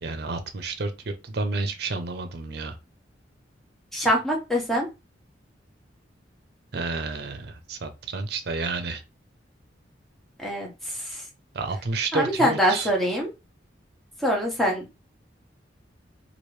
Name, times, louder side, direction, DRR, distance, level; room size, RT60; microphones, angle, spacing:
voice 1, 0.0-2.7 6.7-9.0 11.5-12.9, right 3 dB, 60° right, 0.6 m, -30 dB
voice 2, 3.9-4.9 10.4-11.2 12.1-13.3 14.2-14.9, equal, ahead, 0.9 m, -24 dB
3.0 x 2.5 x 3.1 m
head